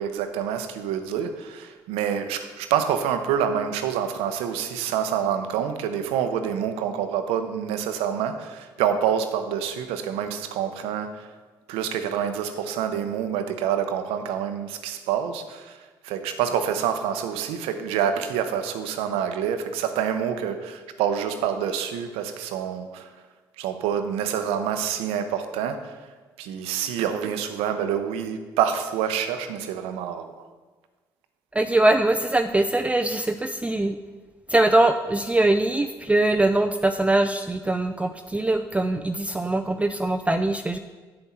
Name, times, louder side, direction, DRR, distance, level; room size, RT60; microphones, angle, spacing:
voice 1, 0.0-11.3 11.7-23.1 23.6-26.1 26.4-30.5, right 8 dB, 80° right, 9 dB, 0.7 m, -27 dB
voice 2, 31.5-34.0 34.5-40.8, right 2 dB, 15° right, 7 dB, 0.4 m, -22 dB
7.8 x 7.2 x 4.3 m, 1.4 s
hypercardioid pair, 55°, 10 cm